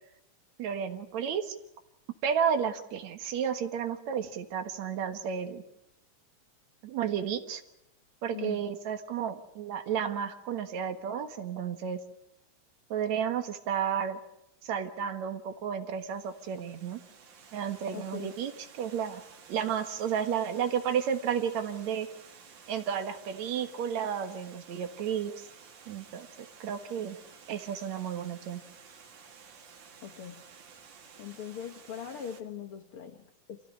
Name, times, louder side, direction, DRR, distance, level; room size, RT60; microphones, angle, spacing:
voice 1, 0.6-1.6 2.2-5.6 6.8-7.6 8.2-12.0 12.9-14.2 14.6-17.0 17.5-18.5 18.8-19.2 19.5-22.1 22.7-25.5 25.9-26.3 26.6-27.2 27.5-28.6, right 8 dB, 70° right, 8 dB, 2.7 m, -32 dB
voice 2, 8.3-8.7 17.9-18.4 30.0-30.4 31.2-33.6, left 9 dB, 60° left, 8 dB, 1.7 m, -41 dB
Water, 15.9-32.4, right 6 dB, 90° right, 3.8 m, -53 dB
27.5 x 16.0 x 9.9 m, 0.82 s
omnidirectional pair, 3.4 m